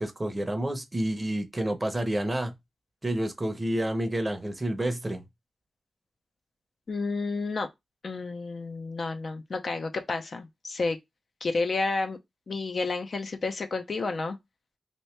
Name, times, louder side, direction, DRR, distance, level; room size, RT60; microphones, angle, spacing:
voice 1, 0.0-2.5 3.0-5.2, right 1 dB, 20° right, 0.7 m, -29 dB
voice 2, 6.9-7.7 8.0-11.0 11.4-12.2 12.5-14.4, left 3 dB, 55° left, 0.5 m, -30 dB
2.9 x 2.6 x 3.2 m
cardioid pair, 75°, 0 cm